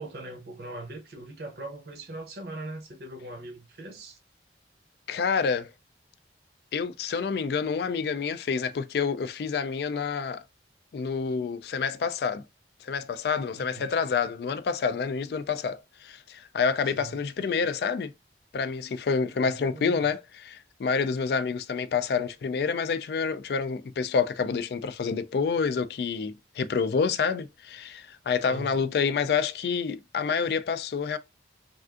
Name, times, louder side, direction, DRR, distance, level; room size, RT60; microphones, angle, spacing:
voice 1, 0.0-4.2 13.5-13.9 16.8-17.2 19.3-20.1 28.5-28.9, right 2 dB, 60° right, 0.7 m, -41 dB
voice 2, 5.1-5.7 6.7-10.4 10.9-12.4 12.8-18.1 18.5-31.2, left 5 dB, 60° left, 0.3 m, -28 dB
3.4 x 2.5 x 2.4 m
head